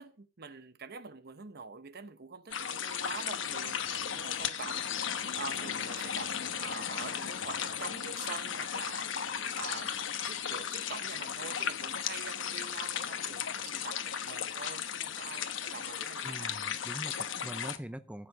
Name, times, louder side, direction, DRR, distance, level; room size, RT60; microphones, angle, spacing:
voice 1, 0.0-9.1 9.6-16.6, right 5 dB, 55° right, 1.0 m, -45 dB
sound 1, 2.5-17.8, left 8 dB, 90° left, 1.1 m, -35 dB
voice 2, 16.2-18.3, right 1 dB, 5° right, 0.6 m, -43 dB
15.0 x 7.8 x 4.7 m
head